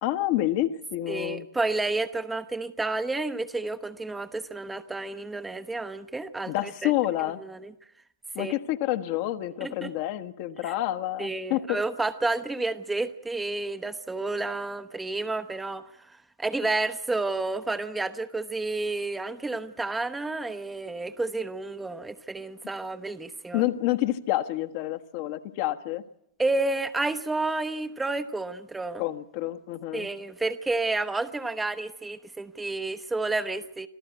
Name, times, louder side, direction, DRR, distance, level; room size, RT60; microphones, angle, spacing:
voice 1, 0.0-1.4 6.5-7.4 8.3-11.8 23.5-26.0 29.0-30.1, left 14 dB, 45° left, 9 dB, 1.3 m, -28 dB
voice 2, 1.1-6.9 7.4-7.7 8.4-8.5 9.6-9.9 10.6-10.7 11.2-23.7 26.4-29.0 29.9-33.9, right 2 dB, 10° right, 10 dB, 1.0 m, -30 dB
26.0 x 14.5 x 8.2 m, 0.72 s
figure-of-eight pair, 95°, 0 cm